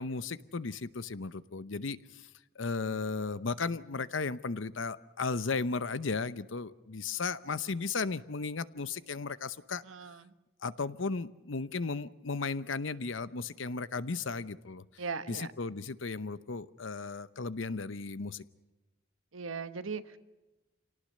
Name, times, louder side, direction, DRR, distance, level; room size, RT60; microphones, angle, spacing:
voice 1, 0.0-2.3 2.6-9.8 10.6-14.8 15.3-18.4, left 4 dB, 65° left, 15 dB, 0.8 m, -35 dB
voice 2, 9.8-10.3 15.0-15.5 19.3-20.2, right 5 dB, 85° right, 11 dB, 1.2 m, -39 dB
26.5 x 18.5 x 6.5 m, 1.1 s
head